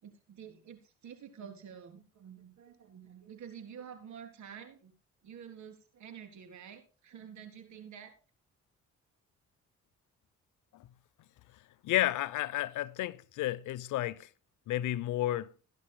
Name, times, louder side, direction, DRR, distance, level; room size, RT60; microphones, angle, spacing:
voice 1, 0.0-4.9 5.2-8.1, right 8 dB, 70° right, 3.7 m, -49 dB
voice 2, 11.8-14.3 14.7-15.5, left 14 dB, 80° left, 0.8 m, -32 dB
18.5 x 10.5 x 2.2 m
cardioid pair, 90°, 30 cm